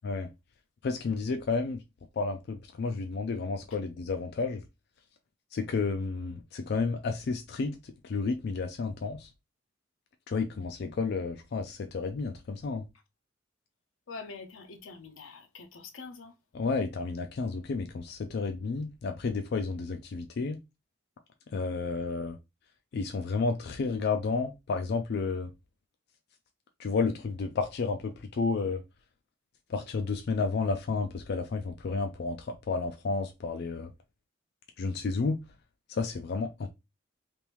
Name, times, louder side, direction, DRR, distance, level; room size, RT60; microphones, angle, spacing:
voice 1, 0.8-1.8 2.2-4.6 5.5-9.3 10.3-12.8 16.5-20.6 21.5-22.4 22.9-25.5 26.8-28.8 29.7-33.9 34.8-35.4 35.9-36.7, left 4 dB, 55° left, 0.4 m, -31 dB
voice 2, 14.1-16.3, left 4 dB, 85° left, 0.7 m, -45 dB
3.4 x 2.6 x 2.9 m
head